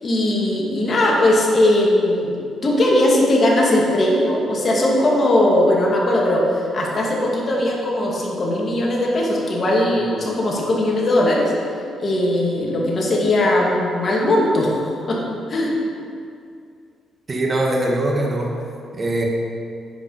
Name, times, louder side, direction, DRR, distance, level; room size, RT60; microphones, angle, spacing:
voice 1, 0.0-2.4 2.6-11.5 12.0-15.2 15.5-15.8, left 1 dB, 40° left, -3 dB, 2.2 m, -19 dB
voice 2, 17.3-18.5 18.9-19.3, right 1 dB, 35° right, 0 dB, 1.6 m, -21 dB
10.0 x 5.1 x 5.5 m, 2.4 s
cardioid pair, 90°, 0 cm